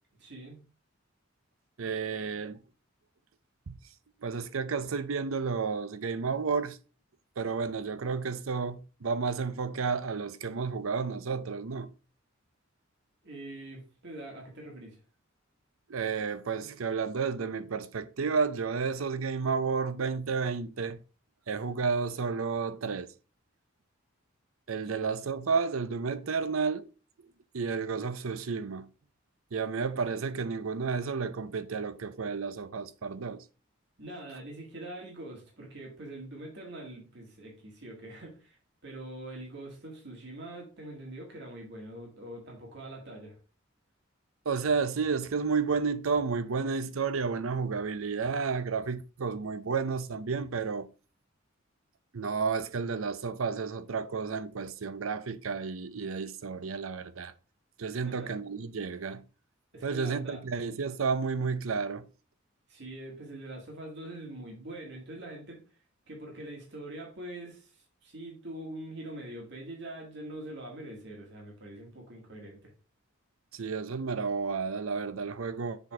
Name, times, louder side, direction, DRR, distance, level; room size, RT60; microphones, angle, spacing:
voice 1, 0.2-0.6 13.2-15.0 24.9-25.1 34.0-38.6 38.8-43.4 58.0-58.3 59.7-60.4 62.7-65.6 66.1-72.7, right 1 dB, 60° right, 2.2 m, -44 dB
voice 2, 1.8-2.6 3.7-3.8 4.2-6.8 7.4-11.9 15.9-21.0 21.5-23.1 24.7-26.9 27.5-28.9 29.5-33.4 44.4-50.9 52.1-57.3 57.8-59.2 59.8-62.1 73.5-75.9, right 5 dB, 85° right, 0.6 m, -31 dB
7.1 x 4.1 x 4.8 m
head